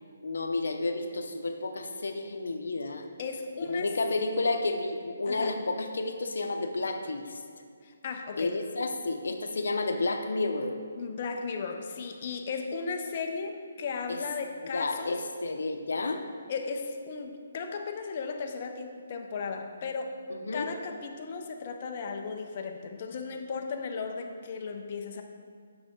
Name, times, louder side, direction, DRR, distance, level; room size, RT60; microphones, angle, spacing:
voice 1, 0.2-3.1 3.6-7.4 8.4-10.8 14.1-14.2 14.7-16.2 20.3-20.7, left 3 dB, 75° left, 6 dB, 0.6 m, -31 dB
voice 2, 3.2-3.9 5.3-5.5 7.8-8.6 11.0-15.2 16.5-20.1 20.5-25.2, left 5 dB, 25° left, 4 dB, 0.4 m, -36 dB
6.3 x 4.9 x 3.7 m, 2.1 s
hypercardioid pair, 180°, 0 cm